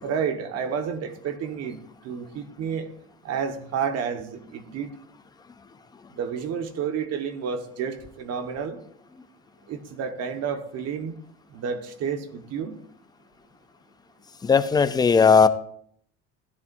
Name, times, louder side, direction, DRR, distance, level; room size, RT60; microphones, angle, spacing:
voice 1, 0.0-2.9 3.2-4.9 6.1-8.8 9.7-11.1 11.5-12.8, right 7 dB, 45° right, 1.4 m, -30 dB
voice 2, 14.5-15.5, left 5 dB, 10° left, 0.5 m, -17 dB
15.5 x 11.0 x 2.6 m
supercardioid pair, 125°, 34 cm